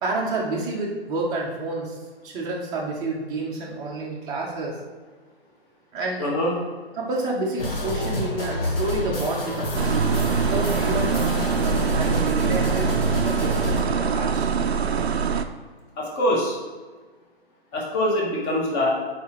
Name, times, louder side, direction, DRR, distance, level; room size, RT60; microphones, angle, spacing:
voice 1, 0.0-2.0 2.2-4.8 5.9-6.3 6.9-10.0 10.4-12.9 13.4-14.5, right 2 dB, 10° right, -3 dB, 0.7 m, -29 dB
voice 2, 6.2-6.6 16.0-16.6 17.7-18.9, left 1 dB, 20° left, -3 dB, 1.3 m, -23 dB
sound 1, 7.6-13.8, equal, 65° left, 1.4 m, -27 dB
sound 2, 9.7-15.4, right 6 dB, 80° right, 0.5 m, -24 dB
7.0 x 4.9 x 3.0 m, 1.4 s
figure-of-eight pair, 135°, 32 cm